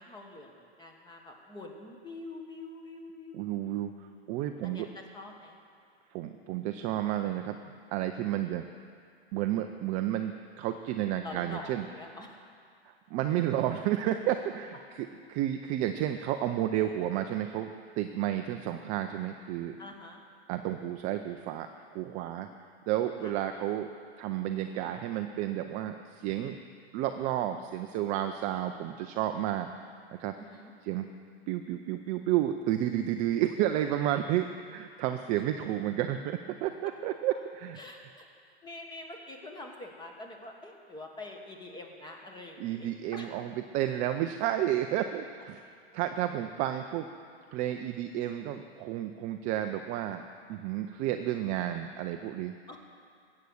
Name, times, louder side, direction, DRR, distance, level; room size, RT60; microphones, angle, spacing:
voice 1, 0.0-3.7 4.6-5.6 11.2-12.4 19.8-20.2 23.2-23.3 30.4-30.7 37.8-38.3 38.6-43.3 52.7-52.8, left 2 dB, 15° left, 2 dB, 1.5 m, -45 dB
voice 2, 3.3-3.9 4.3-4.9 6.1-7.6 7.9-8.7 9.3-11.9 13.1-17.7 18.0-19.8 20.5-21.7 21.9-22.5 22.9-23.9 24.2-26.6 26.9-29.7 30.2-30.3 30.8-31.1 31.5-37.8 42.6-45.6 45.9-47.1 47.5-50.2 50.5-52.5, right 12 dB, 25° right, 7 dB, 0.4 m, -31 dB
14.0 x 8.5 x 6.4 m, 2.3 s
hypercardioid pair, 120°, 32 cm